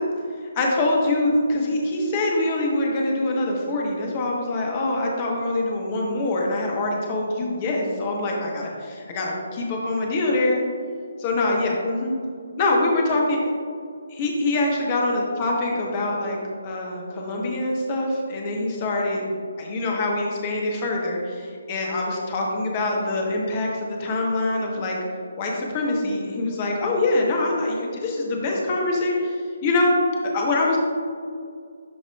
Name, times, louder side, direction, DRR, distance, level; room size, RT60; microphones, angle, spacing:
voice 1, 0.5-10.6 11.2-12.1 12.6-13.4 14.1-16.4 16.6-25.0 25.4-29.3 29.6-29.9 30.3-30.8, left 2 dB, 30° left, -1 dB, 1.1 m, -24 dB
12.0 x 4.2 x 2.3 m, 2.2 s
figure-of-eight pair, 140°, 0 cm